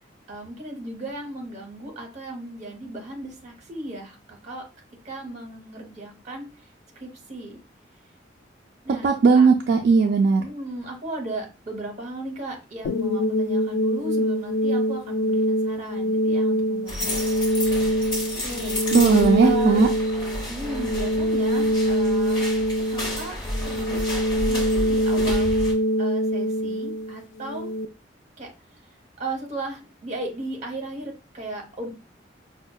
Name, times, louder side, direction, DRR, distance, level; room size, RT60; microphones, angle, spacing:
voice 1, 0.3-4.7 5.0-6.5 7.0-7.6 8.8-9.5 10.4-17.4 18.4-18.8 19.4-19.9 20.5-22.4 22.9-23.4 23.6-25.5 26.0-27.7 28.4-28.5 29.2-31.9, right 2 dB, 40° right, 1 dB, 0.8 m, -36 dB
voice 2, 9.0-10.5 18.9-19.9, right 5 dB, 55° right, 1 dB, 0.3 m, -17 dB
sound 1, 12.8-27.9, equal, 80° left, 0.3 m, -24 dB
sound 2, 16.9-25.7, left 1 dB, 25° left, 1.0 m, -32 dB
5.2 x 2.1 x 2.3 m, 0.32 s
head